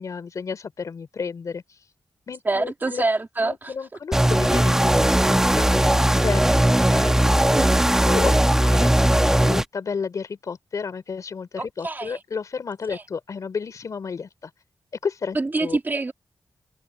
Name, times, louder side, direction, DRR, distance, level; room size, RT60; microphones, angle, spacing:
voice 1, 0.0-1.6 2.3-3.0 3.4-6.6 6.9-7.4 8.0-14.5 15.0-15.8, left 5 dB, 65° left, 3.1 m, -32 dB
voice 2, 2.5-3.7 7.4-7.7 11.6-12.2 12.9-13.0 15.4-16.1, right 3 dB, 30° right, 1.8 m, -26 dB
sound 1, 4.1-9.6, right 1 dB, 10° right, 1.4 m, -18 dB
cardioid pair, 80°, 6 cm